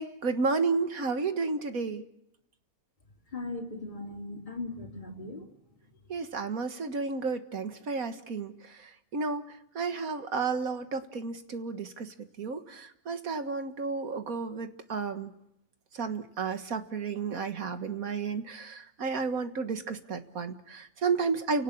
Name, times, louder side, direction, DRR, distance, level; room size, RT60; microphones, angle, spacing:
voice 1, 0.0-2.0 6.1-9.4 9.8-15.3 15.9-21.6, right 4 dB, 75° right, 8 dB, 2.0 m, -32 dB
voice 2, 3.3-5.4, left 2 dB, 30° left, 1 dB, 3.3 m, -38 dB
29.5 x 18.0 x 8.5 m, 0.81 s
omnidirectional pair, 1.5 m